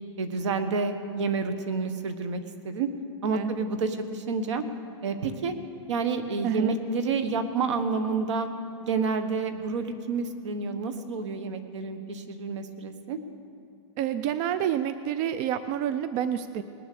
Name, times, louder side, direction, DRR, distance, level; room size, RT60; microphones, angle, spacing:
voice 1, 0.2-2.4 2.6-2.9 3.2-4.6 5.0-5.5 5.9-8.5 8.8-13.2, right 4 dB, 75° right, 9 dB, 1.2 m, -29 dB
voice 2, 6.4-6.7 14.0-16.6, right 10 dB, 35° right, 12 dB, 0.4 m, -28 dB
20.0 x 7.1 x 6.8 m, 2.7 s
supercardioid pair, 150°, 15 cm